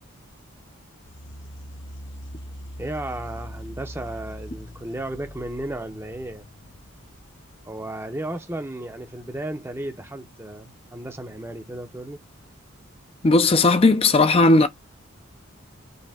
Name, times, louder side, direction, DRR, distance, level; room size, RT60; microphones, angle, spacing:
sound 1, 1.1-7.6, equal, 55° left, 0.8 m, -41 dB
voice 1, 2.8-6.5 7.7-12.2, right 1 dB, 10° right, 0.6 m, -34 dB
voice 2, 13.2-14.7, left 3 dB, 25° left, 0.4 m, -16 dB
5.1 x 2.9 x 3.4 m
head